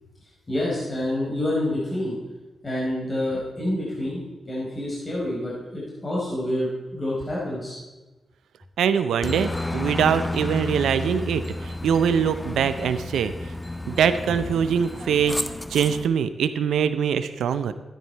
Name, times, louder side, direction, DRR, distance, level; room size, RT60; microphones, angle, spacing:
voice 1, 0.5-2.1 2.6-7.8, left 1 dB, 40° left, -6 dB, 4.5 m, -28 dB
voice 2, 8.8-13.5 13.9-17.7, right 7 dB, 80° right, 12 dB, 0.5 m, -23 dB
Aircraft, 9.2-16.1, left 2 dB, 25° left, 0.8 m, -31 dB
13.0 x 9.8 x 4.5 m, 1.1 s
supercardioid pair, 45°, 0 cm